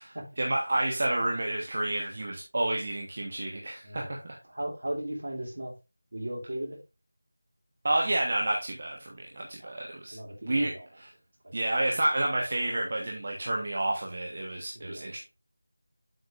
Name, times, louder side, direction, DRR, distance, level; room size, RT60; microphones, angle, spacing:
voice 1, 0.4-4.4 7.8-10.2 10.4-11.1 11.5-15.3, right 1 dB, 40° right, 1.2 m, -30 dB
voice 2, 3.8-4.2 4.5-5.7 6.1-6.8 9.6-9.7 10.1-10.8 11.4-11.6 14.7-15.0, right 1 dB, 70° right, 2.9 m, -37 dB
7.8 x 6.8 x 2.5 m
figure-of-eight pair, 175°, 0 cm